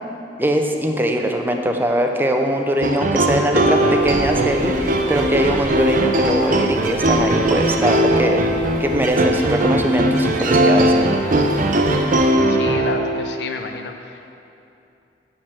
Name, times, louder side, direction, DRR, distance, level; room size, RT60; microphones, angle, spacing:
voice 1, 0.4-11.0, equal, 10° right, 3 dB, 0.6 m, -21 dB
sound 1, 2.8-13.3, right 1 dB, 50° right, 0.7 m, -19 dB
sound 2, 3.7-12.3, equal, 45° left, 2.0 m, -36 dB
voice 2, 12.5-14.3, left 3 dB, 70° left, 5 dB, 0.6 m, -30 dB
9.8 x 4.5 x 7.7 m, 2.7 s
head